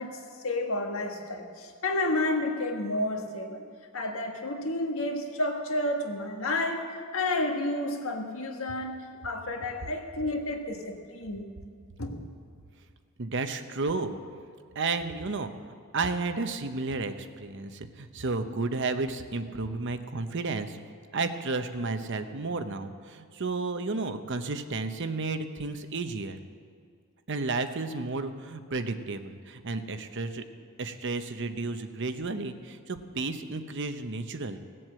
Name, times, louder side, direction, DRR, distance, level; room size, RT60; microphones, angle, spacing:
voice 1, 0.0-3.6 3.9-11.5 12.0-12.2, left 2 dB, 70° left, 3 dB, 1.6 m, -31 dB
voice 2, 13.2-14.2 14.7-15.5 15.9-20.8 21.1-26.4 27.3-30.4 30.8-34.6, right 3 dB, 55° right, 9 dB, 0.8 m, -32 dB
18.0 x 7.8 x 7.6 m, 2.1 s
head